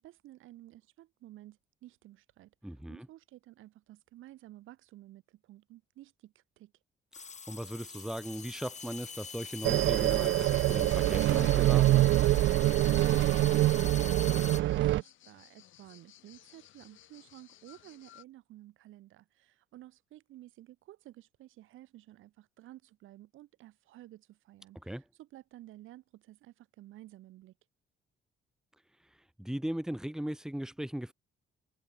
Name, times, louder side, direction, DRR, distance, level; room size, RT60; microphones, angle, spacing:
voice 1, 0.0-6.7 12.6-27.5, right 15 dB, 85° right, 3.9 m, -53 dB
voice 2, 2.6-3.1 7.5-12.0 24.8-25.0 29.4-31.1, right 1 dB, 5° right, 1.8 m, -38 dB
sound 1, 7.1-14.6, left 5 dB, 35° left, 3.6 m, -44 dB
sound 2, 8.2-18.2, left 13 dB, 80° left, 5.8 m, -58 dB
sound 3, 9.6-15.0, right 15 dB, 70° right, 0.5 m, -25 dB
cardioid pair, 90°, 20 cm